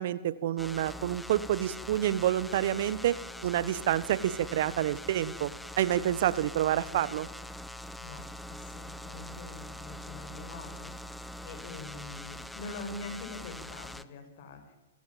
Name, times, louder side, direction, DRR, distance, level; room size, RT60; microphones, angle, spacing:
voice 1, 0.0-3.2 3.4-7.3, right 12 dB, 55° right, 18 dB, 1.2 m, -28 dB
sound 1, 0.6-14.0, left 1 dB, 5° left, 1.0 m, -43 dB
voice 2, 8.0-14.8, left 3 dB, 50° left, 5 dB, 7.1 m, -44 dB
27.0 x 15.0 x 9.1 m, 1.0 s
hypercardioid pair, 115°, 0 cm